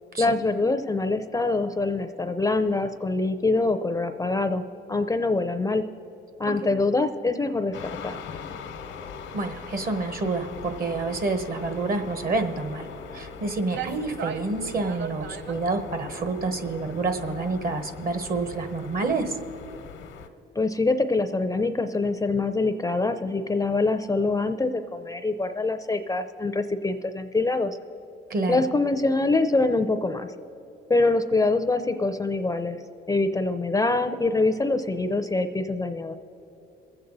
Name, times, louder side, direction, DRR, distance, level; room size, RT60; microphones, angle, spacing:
voice 1, 0.2-5.8 6.4-8.2 20.6-27.8 28.5-30.3 30.9-32.8 33.1-36.1, left 3 dB, 15° left, 9 dB, 0.5 m, -24 dB
sound 1, 7.7-20.3, left 6 dB, 90° left, 1.0 m, -41 dB
voice 2, 9.3-12.9 13.1-19.4 28.3-28.6, right 3 dB, 50° right, 8 dB, 1.3 m, -28 dB
sound 2, 13.3-13.4 13.7-15.7, right 9 dB, 65° right, 0.5 m, -37 dB
21.5 x 8.0 x 4.0 m, 3.0 s
cardioid pair, 90°, 20 cm